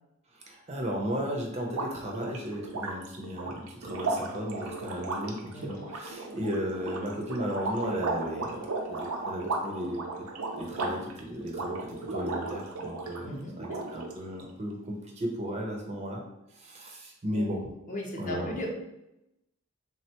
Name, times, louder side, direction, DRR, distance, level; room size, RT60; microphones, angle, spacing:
voice 1, 0.3-10.3 10.6-16.2 16.5-17.6 18.2-18.6, equal, 30° right, 0 dB, 0.5 m, -35 dB
sound 1, 1.6-13.2 13.6-14.4, right 3 dB, 80° right, 0.5 m, -35 dB
voice 2, 5.5-5.9 13.2-13.8 17.3-17.5 17.9-18.7, left 1 dB, 35° left, -1 dB, 0.6 m, -37 dB
3.3 x 2.1 x 2.8 m, 0.87 s
head